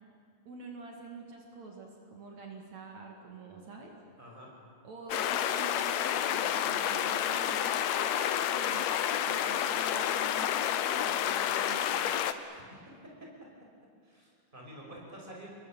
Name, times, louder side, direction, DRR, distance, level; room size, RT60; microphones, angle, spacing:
voice 1, 0.5-3.9 4.8-8.9 9.2-12.2, right 3 dB, 60° right, 1 dB, 3.3 m, -47 dB
voice 2, 4.2-4.5 12.5-12.6 14.0-15.5, right 1 dB, 15° right, -2 dB, 5.8 m, -48 dB
sound 1, 5.1-12.3, left 10 dB, 70° left, 1.9 m, -30 dB
28.5 x 22.5 x 7.5 m, 2.1 s
omnidirectional pair, 3.7 m